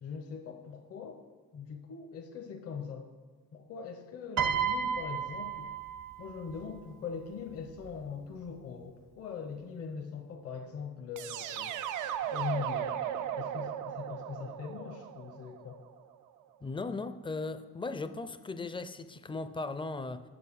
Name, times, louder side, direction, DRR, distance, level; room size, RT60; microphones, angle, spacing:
voice 1, 0.0-1.2 1.5-3.1 3.5-5.7 6.2-11.9 12.3-12.9 13.4-15.8, left 6 dB, 50° left, 4 dB, 0.7 m, -41 dB
Piano, 4.4-6.7 7.8-8.0, right 7 dB, 65° right, 0.8 m, -33 dB
sound 1, 11.2-16.1, right 10 dB, 80° right, 0.5 m, -36 dB
voice 2, 16.6-20.2, left 3 dB, 15° left, 11 dB, 0.4 m, -37 dB
6.9 x 6.6 x 5.3 m, 1.4 s
cardioid pair, 90°, 30 cm